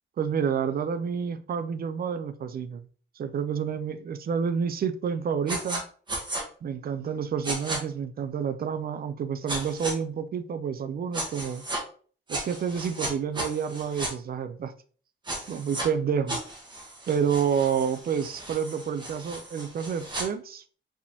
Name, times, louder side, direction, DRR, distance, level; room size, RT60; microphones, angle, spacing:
voice 1, 0.2-2.9 3.2-5.8 6.6-11.6 12.3-14.7 15.5-16.4 17.1-20.6, right 7 dB, 45° right, 0.4 m, -29 dB
sound 1, 5.5-5.8 6.1-6.4 7.4-7.8 9.5-9.9 11.1-11.8 12.3-14.1 15.2-15.9 16.3-20.2, right 1 dB, 20° right, 1.2 m, -34 dB
4.9 x 3.5 x 2.7 m
wide cardioid pair, 170°, 21 cm